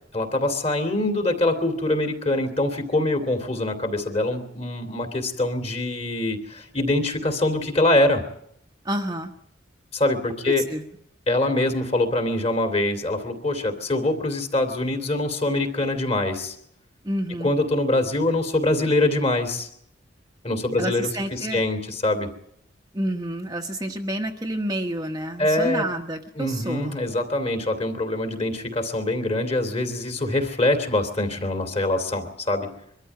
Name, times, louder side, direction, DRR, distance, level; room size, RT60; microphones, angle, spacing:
voice 1, 0.1-8.2 9.9-10.6 11.3-16.6 17.4-19.7 20.4-22.3 25.4-25.8 26.4-32.7, left 2 dB, 30° left, 6 dB, 2.8 m, -24 dB
voice 2, 8.8-9.3 10.4-10.8 17.0-17.5 20.8-21.6 22.9-27.0, right 1 dB, 20° right, 2 dB, 1.1 m, -29 dB
23.5 x 13.5 x 9.3 m, 0.71 s
head